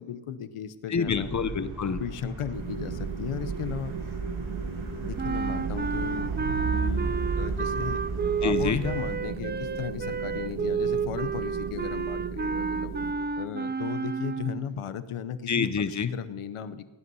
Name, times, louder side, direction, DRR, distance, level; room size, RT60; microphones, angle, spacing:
voice 1, 0.0-1.3 1.9-3.9 5.0-8.0 8.4-13.0 13.4-15.7 16.1-16.9, left 8 dB, 85° left, 14 dB, 1.0 m, -36 dB
voice 2, 0.9-2.0 8.4-8.9 15.5-16.1, left 6 dB, 35° left, 13 dB, 0.8 m, -27 dB
sound 1, 1.0-9.2, right 4 dB, 70° right, 4.2 m, -34 dB
sound 2, 2.5-13.1, right 5 dB, 85° right, 1.9 m, -37 dB
sound 3, 5.2-14.7, right 5 dB, 25° right, 0.4 m, -31 dB
19.0 x 9.5 x 5.5 m, 1.2 s
wide cardioid pair, 115°, 49 cm